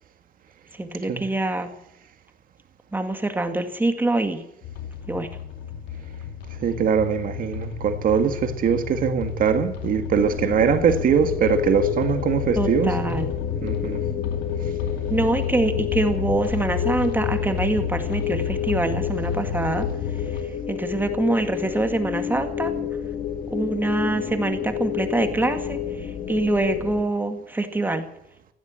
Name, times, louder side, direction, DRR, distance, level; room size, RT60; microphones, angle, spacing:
voice 1, 0.7-1.7 2.9-4.4 5.1-5.3 12.6-13.4 15.1-19.9 20.3-20.4 20.7-22.7 23.5-28.0, right 2 dB, 10° right, 7 dB, 2.1 m, -25 dB
sound 1, 4.6-20.4, left 8 dB, 80° left, 2.5 m, -31 dB
voice 2, 6.6-13.2 13.6-14.0, right 7 dB, 55° right, 7 dB, 1.9 m, -22 dB
sound 2, 10.2-27.0, left 8 dB, 45° left, 2.1 m, -30 dB
16.0 x 11.5 x 7.6 m, 0.80 s
cardioid pair, 110°, 17 cm